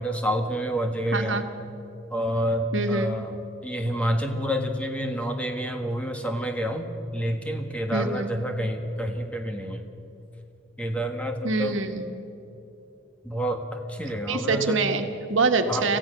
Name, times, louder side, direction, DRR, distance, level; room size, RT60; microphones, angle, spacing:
voice 1, 0.0-1.4 2.1-9.8 10.8-11.8 13.2-14.8 15.7-15.9, equal, 5° left, 4 dB, 1.5 m, -28 dB
voice 2, 1.1-1.4 2.7-3.1 7.9-8.3 11.4-12.1 14.3-16.0, right 3 dB, 85° right, 6 dB, 1.5 m, -25 dB
26.0 x 15.5 x 6.8 m, 2.9 s
head